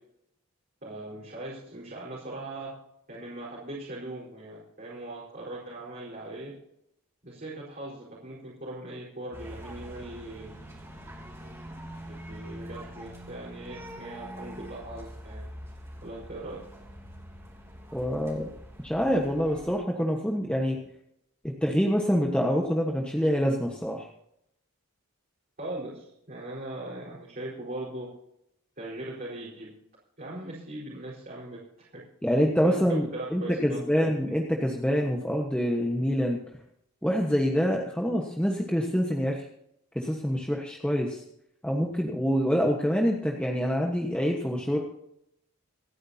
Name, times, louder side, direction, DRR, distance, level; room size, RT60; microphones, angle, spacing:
voice 1, 0.8-2.7 3.1-6.5 7.2-10.5 12.1-15.4 16.0-16.6 25.6-28.1 28.8-29.7 30.2-32.0 32.3-34.1, right 1 dB, 40° right, -6 dB, 4.6 m, -40 dB
sound 1, 9.3-19.8, equal, 10° right, 3.0 m, -44 dB
voice 2, 17.9-18.5 18.8-20.8 21.6-24.1 32.2-36.4 37.0-39.5 39.9-41.2 41.6-44.8, equal, 5° left, 0 dB, 1.3 m, -26 dB
27.5 x 10.0 x 2.8 m, 0.77 s
head